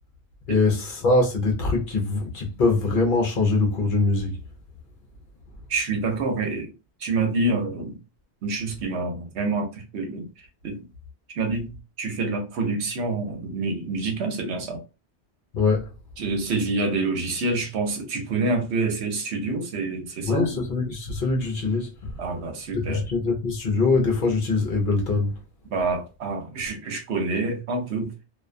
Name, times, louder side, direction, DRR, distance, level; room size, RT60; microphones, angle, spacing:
voice 1, 0.5-4.4 15.5-15.9 20.2-21.9 22.7-25.4, left 3 dB, 55° left, 0.7 m, -23 dB
voice 2, 5.7-6.7 7.0-8.0 8.4-10.3 10.6-10.9 11.3-14.8 16.2-20.6 22.2-23.0 25.7-28.1, right 3 dB, 75° right, 1.0 m, -27 dB
2.4 x 2.2 x 2.4 m
omnidirectional pair, 1.2 m